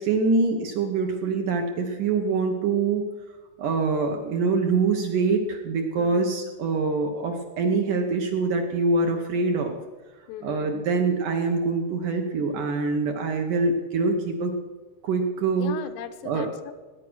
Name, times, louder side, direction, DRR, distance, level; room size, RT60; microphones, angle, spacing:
voice 1, 0.0-3.1 3.6-9.8 10.4-14.5 15.0-15.7 16.2-16.5, right 4 dB, 65° right, 3 dB, 2.2 m, -24 dB
voice 2, 6.0-6.3 10.3-10.7 15.5-16.7, left 10 dB, 85° left, 9 dB, 3.0 m, -38 dB
18.5 x 9.4 x 6.3 m, 1.3 s
omnidirectional pair, 4.8 m